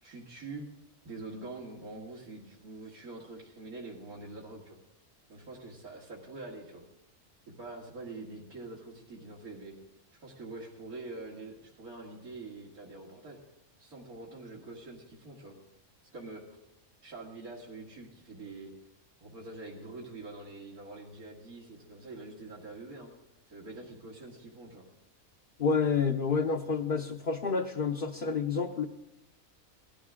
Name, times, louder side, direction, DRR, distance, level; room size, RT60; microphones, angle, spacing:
voice 1, 0.0-0.7 1.0-4.8 5.3-6.8 7.5-9.7 10.2-13.4 13.8-15.5 16.1-16.4 17.0-18.7 19.2-23.1 23.5-24.9 26.4-26.6, right 2 dB, 80° right, -5 dB, 2.7 m, -45 dB
voice 2, 25.6-28.9, left 5 dB, 45° left, 2 dB, 0.9 m, -29 dB
19.0 x 14.0 x 3.7 m, 0.89 s
omnidirectional pair, 1.5 m